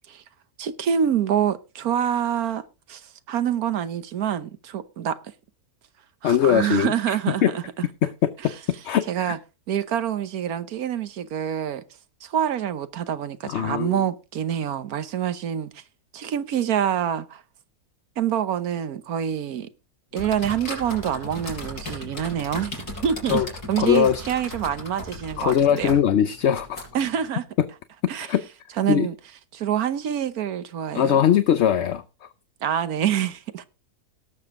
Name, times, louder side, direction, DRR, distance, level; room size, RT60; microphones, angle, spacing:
voice 1, 0.6-2.6 2.9-5.2 6.2-7.6 9.1-9.4 9.7-11.8 12.2-15.8 16.1-17.4 18.2-19.7 20.1-25.9 26.9-27.4 28.1-28.3 28.8-29.1 29.5-31.2 32.6-33.6, right 9 dB, 75° right, 1.4 m, -26 dB
voice 2, 6.2-7.2 7.4-7.5 8.8-9.3 13.5-14.0 23.3-23.5 23.8-24.2 25.4-26.9 28.2-28.4 28.9-29.1 30.9-32.0, left 9 dB, 60° left, 0.8 m, -21 dB
sound 1, 20.1-27.3, left 1 dB, 80° left, 4.9 m, -37 dB
17.5 x 7.1 x 3.7 m
omnidirectional pair, 1.6 m